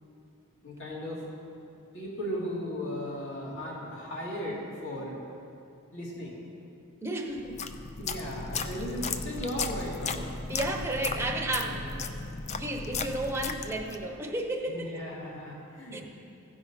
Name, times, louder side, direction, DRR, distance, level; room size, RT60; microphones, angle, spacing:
voice 1, 0.6-1.3 1.9-5.2 5.9-6.4 8.0-10.3 11.6-11.8 14.7-16.0, equal, 60° left, -6 dB, 2.7 m, -36 dB
voice 2, 7.0-7.7 10.5-11.8 12.6-15.2 15.9-16.0, right 1 dB, 10° right, 1 dB, 0.8 m, -32 dB
sound 1, 7.4-14.1, left 4 dB, 30° left, 0.4 m, -35 dB
15.5 x 5.3 x 4.9 m, 2.5 s
head